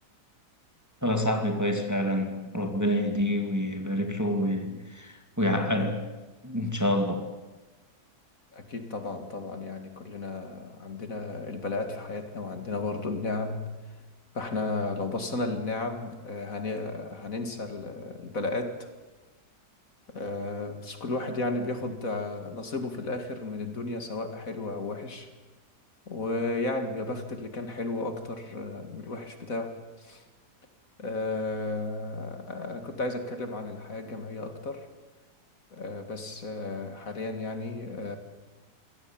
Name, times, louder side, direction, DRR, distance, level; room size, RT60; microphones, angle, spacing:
voice 1, 1.0-6.1 6.4-7.3, left 1 dB, 10° right, 4 dB, 2.1 m, -27 dB
voice 2, 8.5-13.6 14.3-18.9 20.1-25.3 26.1-30.2 31.0-34.9 35.7-38.2, left 2 dB, 50° left, 7 dB, 2.4 m, -33 dB
26.0 x 17.5 x 8.9 m, 1.2 s
omnidirectional pair, 1.8 m